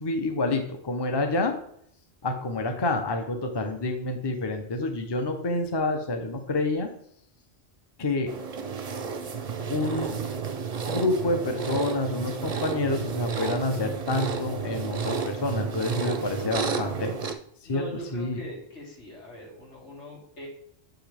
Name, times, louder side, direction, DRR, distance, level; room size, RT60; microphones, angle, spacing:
voice 1, 0.0-1.5 2.2-6.9 8.0-8.4 9.7-10.2 10.9-17.1 17.6-18.4, left 2 dB, 25° left, 5 dB, 0.8 m, -28 dB
sound 1, 8.3-17.3, right 5 dB, 40° right, 0.6 m, -31 dB
voice 2, 16.4-17.1 17.6-20.5, left 1 dB, 85° left, -3 dB, 2.7 m, -41 dB
8.3 x 5.8 x 3.4 m, 0.67 s
omnidirectional pair, 1.2 m